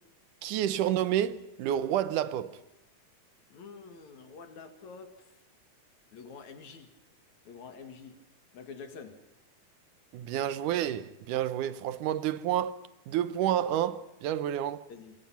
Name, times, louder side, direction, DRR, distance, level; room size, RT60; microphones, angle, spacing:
voice 1, 0.4-2.6 10.1-12.8 13.1-14.8, right 11 dB, 90° right, 2.5 m, -29 dB
voice 2, 3.5-5.3 6.1-6.9 7.4-8.2 8.5-9.2 14.9-15.1, left 5 dB, 65° left, 3.3 m, -47 dB
26.5 x 22.5 x 5.8 m
omnidirectional pair, 3.5 m